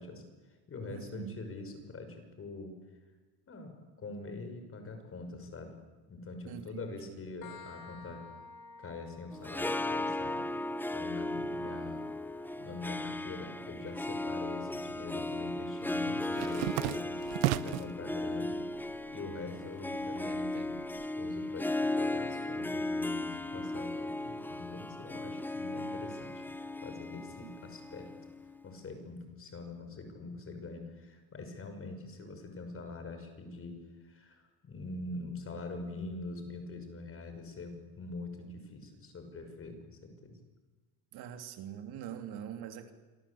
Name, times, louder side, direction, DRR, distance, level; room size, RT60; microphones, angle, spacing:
voice 1, 0.0-2.8 3.5-5.8 6.1-8.2 8.8-10.4 10.9-12.0 12.6-17.2 17.6-18.6 19.1-20.8 21.1-26.4 26.8-28.1 28.6-33.8 34.0-40.4, left 3 dB, 30° left, 7 dB, 6.1 m, -44 dB
voice 2, 0.9-1.4 6.5-7.1 27.4-27.5 41.1-42.9, right 9 dB, 60° right, 6 dB, 2.9 m, -43 dB
sound 1, 7.4-14.8, left 4 dB, 55° left, 3.8 m, -55 dB
Harp, 9.3-28.7, left 2 dB, 5° left, 0.8 m, -36 dB
sound 2, 14.1-14.9 15.2-18.0 18.4-19.1 19.4-21.1, right 17 dB, 85° right, 0.9 m, -36 dB
27.5 x 25.0 x 8.6 m, 1.3 s
cardioid pair, 130°, 42 cm